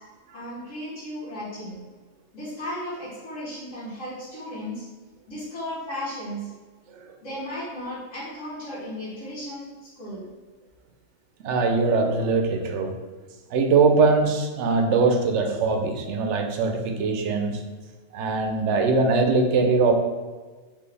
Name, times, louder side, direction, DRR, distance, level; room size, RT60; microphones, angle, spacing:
voice 1, 0.3-1.8 2.3-4.8 5.3-6.5 7.2-10.3, left 1 dB, 90° left, -10 dB, 1.6 m, -35 dB
voice 2, 11.4-12.9 13.5-17.6 18.1-19.9, right 4 dB, 70° right, 4 dB, 0.9 m, -21 dB
4.2 x 3.0 x 3.3 m, 1.4 s
omnidirectional pair, 1.3 m